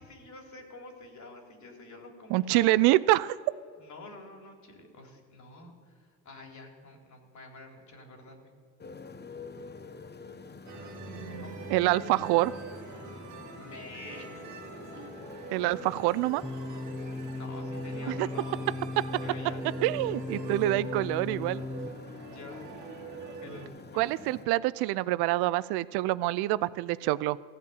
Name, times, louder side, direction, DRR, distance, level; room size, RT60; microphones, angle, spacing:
voice 1, 0.0-2.9 3.8-8.5 11.4-11.6 13.6-14.4 17.3-18.8 19.2-19.6 22.3-22.7 23.4-24.1, left 2 dB, 45° left, 2 dB, 3.5 m, -48 dB
voice 2, 2.3-3.4 11.7-12.5 15.5-16.4 18.2-18.3 19.8-21.6 24.0-27.4, right 17 dB, 70° right, 18 dB, 0.6 m, -26 dB
Motorcycle, 8.8-24.5, left 4 dB, 25° left, 1.0 m, -47 dB
sound 1, 10.7-23.7, right 4 dB, 50° right, 2.3 m, -44 dB
sound 2, 16.4-21.9, left 2 dB, 5° left, 0.4 m, -37 dB
15.5 x 5.5 x 9.3 m, 2.1 s
supercardioid pair, 70°, 40 cm